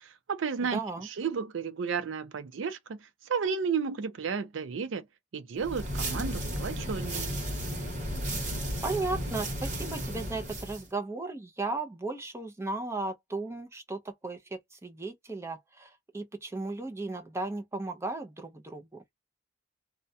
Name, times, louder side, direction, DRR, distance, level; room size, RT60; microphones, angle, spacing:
voice 1, 0.0-3.0 3.3-5.0 5.3-7.3, right 6 dB, 80° right, 0.5 m, -33 dB
voice 2, 0.6-1.1 8.8-18.8, right 3 dB, 15° right, 0.5 m, -35 dB
sound 1, 5.6-10.9, equal, 40° right, 1.1 m, -34 dB
2.3 x 2.1 x 2.6 m
head